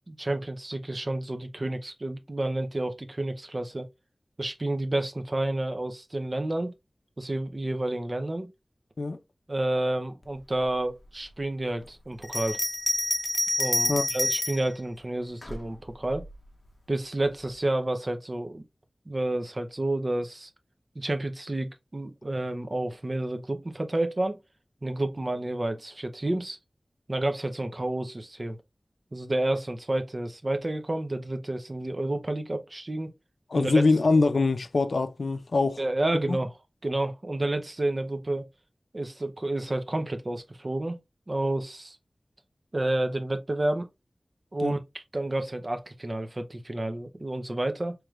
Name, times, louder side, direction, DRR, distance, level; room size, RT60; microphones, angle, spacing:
voice 1, 0.1-3.9 4.4-6.7 7.2-8.5 9.5-12.6 13.6-16.2 16.9-18.6 19.1-20.5 20.9-24.4 24.8-26.6 27.1-28.6 29.1-33.1 33.5-33.7 35.8-36.5 36.8-38.4 38.9-41.0 41.3-42.0 42.7-43.9 44.5-47.9, right 1 dB, 45° right, 0.6 m, -30 dB
Bell, 12.2-14.7 15.4-16.3, left 1 dB, 35° left, 0.7 m, -28 dB
voice 2, 33.5-35.8 36.3-36.4 44.6-44.7, left 3 dB, 90° left, 0.4 m, -23 dB
4.7 x 3.2 x 2.4 m
wide cardioid pair, 75°, 0 cm